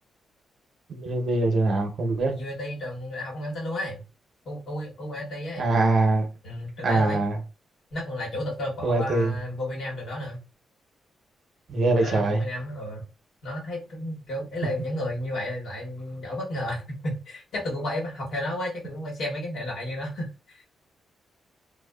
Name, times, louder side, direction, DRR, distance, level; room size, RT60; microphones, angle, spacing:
voice 1, 0.9-2.3 5.6-6.3 6.8-7.4 8.8-9.3 11.7-12.4, right 2 dB, 55° right, 0.6 m, -23 dB
voice 2, 2.3-4.0 4.4-5.7 6.4-7.2 7.9-10.4 12.0-13.0 13.4-20.7, left 1 dB, 70° left, 0.9 m, -32 dB
2.7 x 2.1 x 2.2 m
cardioid pair, 130°, 0 cm